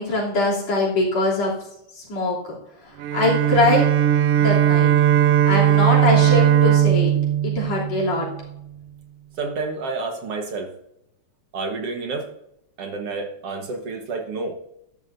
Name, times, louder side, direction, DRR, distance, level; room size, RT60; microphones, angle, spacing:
voice 1, 0.0-1.5 1.9-2.4 3.1-3.9 4.4-4.9 5.5-7.1 7.4-8.3, left 2 dB, 60° left, -4 dB, 4.4 m, -22 dB
Bowed string instrument, 3.0-8.4, right 10 dB, 85° right, 1.3 m, -18 dB
voice 2, 9.4-10.7 11.5-12.3 12.8-14.5, right 3 dB, 55° right, 4 dB, 2.1 m, -29 dB
13.5 x 13.5 x 2.7 m, 0.78 s
omnidirectional pair, 3.4 m